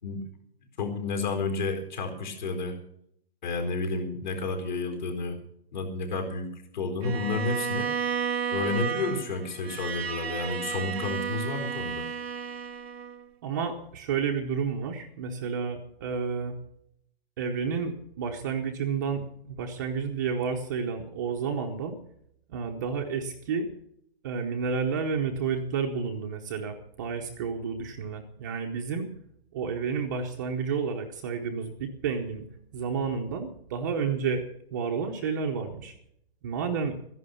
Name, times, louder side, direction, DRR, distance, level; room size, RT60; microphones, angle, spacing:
voice 1, 0.8-2.7 3.4-5.4 5.7-6.5 6.7-7.9 8.5-12.0, left 3 dB, 45° left, 3 dB, 4.3 m, -31 dB
Bowed string instrument, 7.0-13.3, right 7 dB, 80° right, 0.9 m, -32 dB
voice 2, 13.4-16.6 17.4-22.0 22.5-23.7 24.2-29.1 29.5-32.4 32.7-34.4 34.7-35.9 36.4-37.0, right 6 dB, 20° right, 2 dB, 0.9 m, -30 dB
15.0 x 11.0 x 7.0 m, 0.71 s
hypercardioid pair, 165°, 31 cm